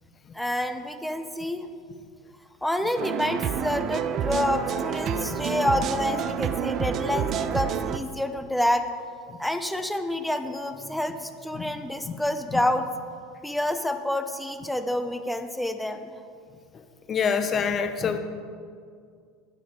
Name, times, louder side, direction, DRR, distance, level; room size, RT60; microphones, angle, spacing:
voice 1, 0.3-1.7 2.6-8.9 9.4-12.9 13.4-16.1, left 1 dB, 5° left, 8 dB, 0.8 m, -28 dB
sound 1, 3.0-8.0, right 8 dB, 45° right, 0.6 m, -28 dB
voice 2, 17.1-18.2, left 6 dB, 35° left, 9 dB, 0.9 m, -26 dB
12.5 x 9.4 x 4.8 m, 2.2 s
supercardioid pair, 115°, 0 cm